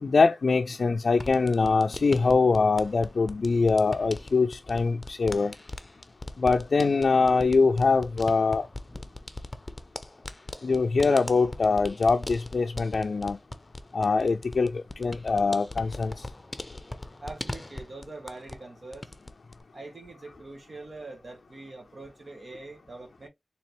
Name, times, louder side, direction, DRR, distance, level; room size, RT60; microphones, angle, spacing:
voice 1, 0.0-5.5 6.4-8.7 10.6-13.4 13.9-16.3, left 4 dB, 80° left, 0.4 m, -23 dB
sound 1, 1.2-18.7 18.9-19.6, left 1 dB, 25° left, 0.6 m, -40 dB
voice 2, 17.2-19.1 19.7-23.3, right 2 dB, 60° right, 1.4 m, -43 dB
4.2 x 2.9 x 3.1 m
wide cardioid pair, 75°, 0 cm